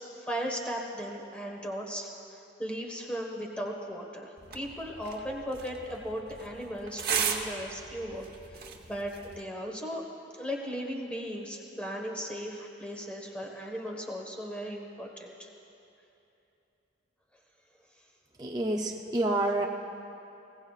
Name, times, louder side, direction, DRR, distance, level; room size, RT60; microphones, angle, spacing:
voice 1, 0.2-2.1 2.6-10.0 10.3-15.5, equal, 5° left, 0 dB, 1.4 m, -37 dB
sound 1, 4.4-9.4, right 6 dB, 55° right, 1.1 m, -36 dB
voice 2, 18.4-19.7, right 2 dB, 20° right, 0 dB, 0.6 m, -28 dB
20.5 x 18.0 x 2.4 m, 2.9 s
head